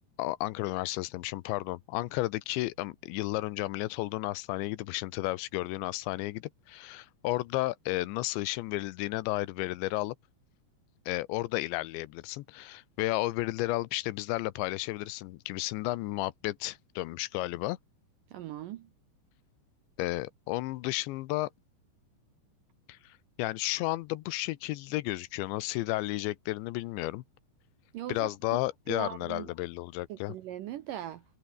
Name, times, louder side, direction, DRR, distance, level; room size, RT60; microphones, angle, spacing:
voice 1, 0.2-10.2 11.1-17.8 20.0-21.5 22.9-27.2 28.1-30.3, left 18 dB, 85° left, 3.1 m, -33 dB
voice 2, 18.3-18.9 27.9-28.6 28.9-29.5 30.1-31.3, right 12 dB, 85° right, 1.9 m, -40 dB
omnidirectional pair, 5.2 m